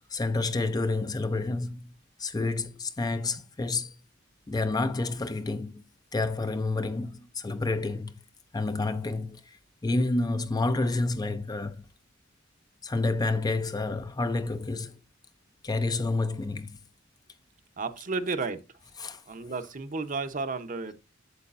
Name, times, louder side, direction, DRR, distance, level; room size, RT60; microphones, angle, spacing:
voice 1, 0.1-1.9 2.2-3.9 4.5-5.8 6.1-8.1 8.5-9.6 9.8-11.8 12.8-15.0 15.6-16.8 19.0-19.2, left 3 dB, 20° left, 0.5 m, -29 dB
voice 2, 17.8-18.6 19.3-20.9, right 4 dB, 40° right, 0.8 m, -32 dB
8.2 x 7.6 x 2.5 m
head